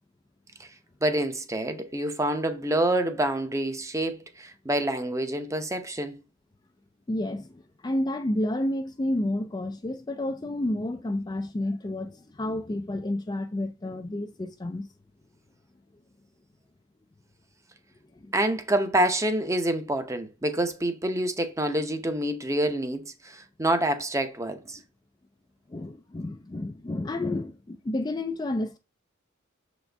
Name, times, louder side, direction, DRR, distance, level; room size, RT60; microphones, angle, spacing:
voice 1, 1.0-6.1 18.3-24.8, right 1 dB, 15° right, 0.7 m, -27 dB
voice 2, 7.1-14.9 18.1-18.3 25.7-28.8, left 1 dB, 20° left, 0.4 m, -30 dB
6.9 x 4.1 x 3.4 m
head